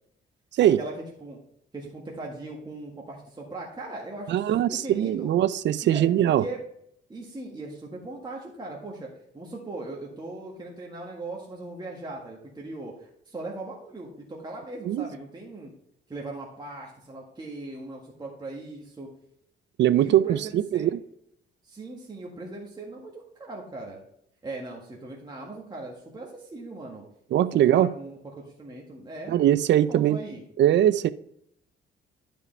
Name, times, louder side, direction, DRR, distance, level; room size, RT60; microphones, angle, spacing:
voice 1, 0.6-0.9 1.2-1.4 1.7-5.3 5.8-6.0 6.4-6.6 7.1-15.7 16.1-19.1 20.0-20.9 21.6-24.0 24.4-27.0 27.5-29.4 29.9-30.4, right 2 dB, 20° right, 1.7 m, -39 dB
voice 2, 4.3-6.5 14.9-15.0 19.8-21.0 27.3-27.9 29.3-30.2 30.6-31.1, right 11 dB, 65° right, 0.5 m, -21 dB
11.0 x 5.1 x 3.3 m
cardioid pair, 90°, 20 cm